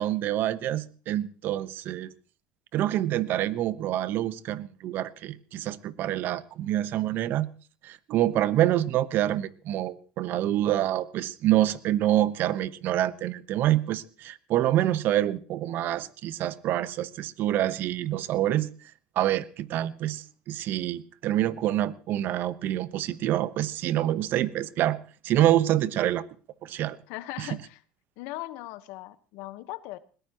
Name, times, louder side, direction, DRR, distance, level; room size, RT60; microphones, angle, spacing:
voice 1, 0.0-2.1 2.7-7.5 7.8-18.7 19.2-26.3 26.6-27.0 27.4-27.5, right 13 dB, 60° right, 1.0 m, -26 dB
voice 2, 27.1-27.8 28.2-30.0, left 17 dB, 75° left, 1.2 m, -39 dB
21.0 x 18.5 x 3.0 m
supercardioid pair, 105°, 4 cm